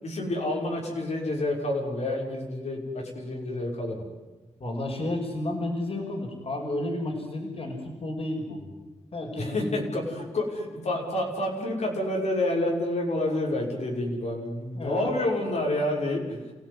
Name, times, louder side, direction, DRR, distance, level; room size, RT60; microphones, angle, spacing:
voice 1, 0.0-4.1 9.4-16.4, left 1 dB, 75° left, 0 dB, 6.3 m, -29 dB
voice 2, 4.6-8.6 9.1-10.3 14.7-15.3 16.3-16.4, left 1 dB, 55° left, 2 dB, 6.0 m, -32 dB
29.0 x 17.0 x 9.9 m, 1.2 s
cardioid pair, 75°, 12 cm